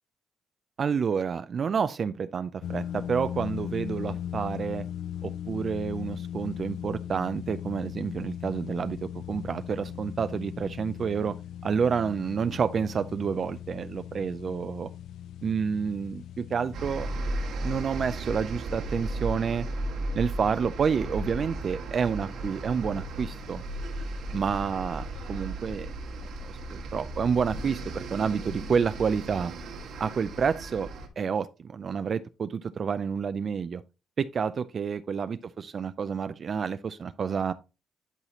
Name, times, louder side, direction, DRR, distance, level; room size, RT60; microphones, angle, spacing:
voice 1, 0.8-4.9 5.2-11.4 11.6-14.9 15.4-17.1 17.6-19.7 20.1-23.6 24.3-25.9 26.4-29.5 30.0-30.9 31.2-33.8 34.2-37.5, right 6 dB, 50° right, 0.4 m, -29 dB
sound 1, 2.6-17.2, left 10 dB, 80° left, 0.4 m, -38 dB
sound 2, 16.7-31.1, right 1 dB, 80° right, 2.0 m, -35 dB
10.5 x 4.1 x 2.9 m
cardioid pair, 90°, 0 cm